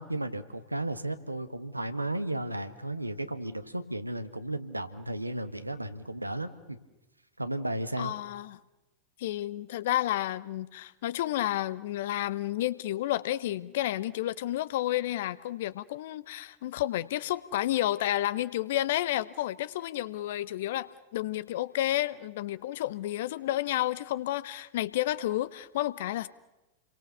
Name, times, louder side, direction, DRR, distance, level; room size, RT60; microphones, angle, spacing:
voice 1, 0.0-6.8 7.4-8.1, right 1 dB, 85° right, 10 dB, 1.6 m, -34 dB
voice 2, 8.0-8.6 9.2-26.3, left 14 dB, 55° left, 17 dB, 1.0 m, -31 dB
30.0 x 23.0 x 6.8 m, 1.0 s
figure-of-eight pair, 90°, 0 cm